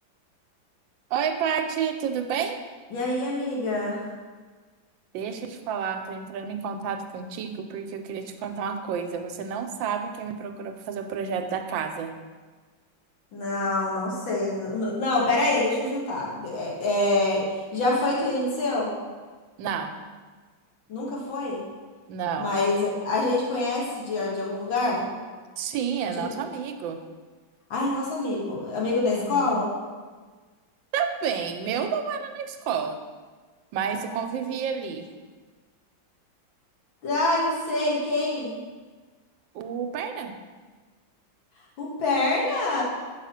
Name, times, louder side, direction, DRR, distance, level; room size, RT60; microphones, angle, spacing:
voice 1, 1.1-2.6 5.1-12.1 19.6-20.0 22.1-22.5 25.6-27.0 29.1-29.6 30.9-33.0 33.7-35.1 39.5-40.4, right 7 dB, 80° right, 6 dB, 1.3 m, -30 dB
voice 2, 2.9-4.1 13.3-18.9 20.9-21.6 22.4-25.1 27.7-29.7 37.0-38.6 41.8-42.8, left 2 dB, 85° left, -4 dB, 2.4 m, -26 dB
6.1 x 4.9 x 5.7 m, 1.4 s
omnidirectional pair, 2.1 m